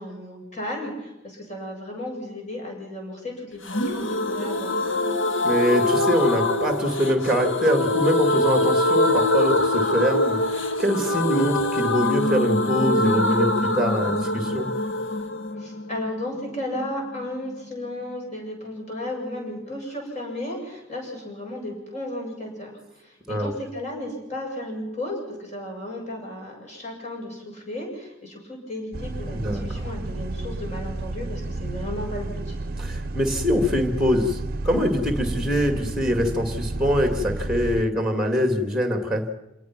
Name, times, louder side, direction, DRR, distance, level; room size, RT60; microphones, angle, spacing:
voice 1, 0.0-4.9 15.6-22.7 23.0-32.6, left 1 dB, 35° left, 0 dB, 7.7 m, -34 dB
sound 1, 3.6-17.3 17.5-17.6 17.9-18.0, left 1 dB, 85° left, 1.6 m, -24 dB
voice 2, 5.4-14.7 23.3-23.5 29.3-29.8 32.8-34.4 34.6-39.3, equal, ahead, 6 dB, 2.1 m, -24 dB
sound 2, 28.9-37.8, right 2 dB, 50° right, 0.7 m, -31 dB
28.0 x 19.0 x 6.0 m, 0.97 s
head